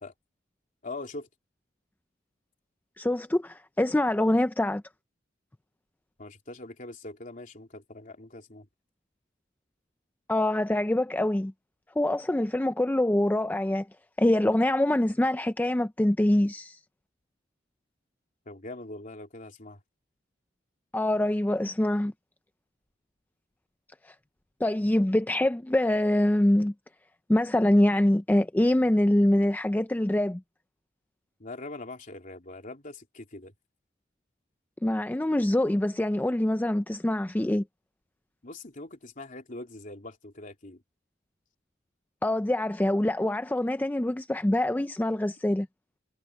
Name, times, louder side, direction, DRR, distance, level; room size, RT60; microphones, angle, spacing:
voice 1, 0.8-1.3 6.2-8.7 18.4-19.8 31.4-33.5 38.4-40.8, left 2 dB, 45° left, 3.3 m, -42 dB
voice 2, 3.0-4.8 10.3-11.5 12.0-13.9 14.2-16.8 20.9-22.1 24.0-24.1 24.6-26.7 27.3-30.4 34.8-37.6 42.2-45.7, left 1 dB, 10° left, 0.4 m, -24 dB
head